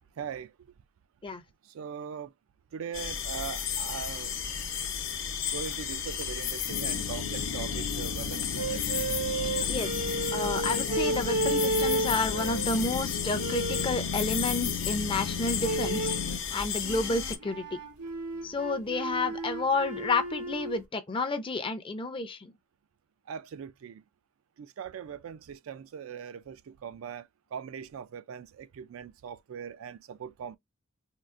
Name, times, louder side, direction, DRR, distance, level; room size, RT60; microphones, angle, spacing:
voice 1, 0.2-0.5 1.7-2.3 2.7-4.3 5.5-8.9 23.3-24.0 24.6-30.6, right 7 dB, 65° right, 0.3 m, -40 dB
sound 1, 2.9-17.4, left 8 dB, 55° left, 0.7 m, -33 dB
sound 2, 6.7-16.4, left 5 dB, 90° left, 0.4 m, -36 dB
sound 3, 8.6-12.8 13.4-14.0 15.6-16.3 16.8-20.8, right 2 dB, 90° right, 0.9 m, -33 dB
voice 2, 9.7-16.1 16.5-17.8 18.4-22.5, left 3 dB, 25° left, 0.4 m, -30 dB
3.7 x 2.3 x 2.4 m
head